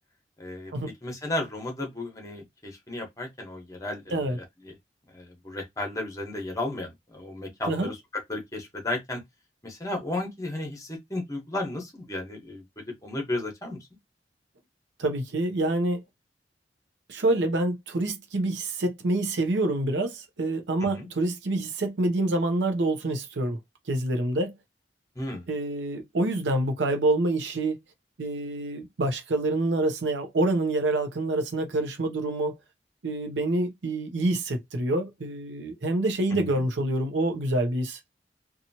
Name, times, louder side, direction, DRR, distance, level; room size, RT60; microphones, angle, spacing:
voice 1, 0.4-0.7 1.0-4.7 5.1-8.0 8.3-9.2 9.6-13.8 20.8-21.1 25.2-25.5 36.3-36.6, left 2 dB, 20° left, 1.0 m, -34 dB
voice 2, 15.0-16.0 17.1-23.6 23.9-24.5 25.5-27.8 28.2-32.6 33.0-38.0, right 2 dB, 85° right, 0.6 m, -27 dB
2.9 x 2.3 x 2.7 m
head